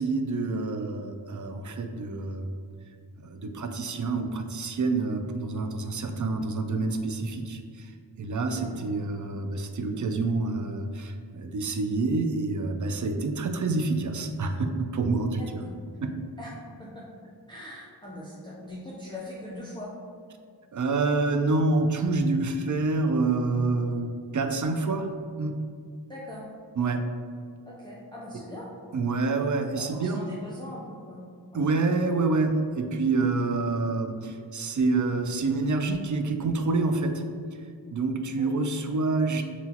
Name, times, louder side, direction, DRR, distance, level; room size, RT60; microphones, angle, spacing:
voice 1, 0.0-2.5 3.2-7.9 8.2-15.6 16.0-16.1 20.7-25.1 25.4-25.5 26.8-27.0 28.9-30.2 31.5-37.2 37.9-39.4, right 3 dB, 45° right, 6 dB, 0.4 m, -27 dB
voice 2, 8.5-8.9 15.4-15.7 16.4-16.5 16.8-17.0 17.5-19.9 26.1-26.4 27.7-28.7 29.8-31.2 31.5-31.7 38.4-38.5, left 1 dB, 10° left, -7 dB, 0.6 m, -41 dB
5.7 x 2.4 x 2.9 m, 2.2 s
wide cardioid pair, 50°, 44 cm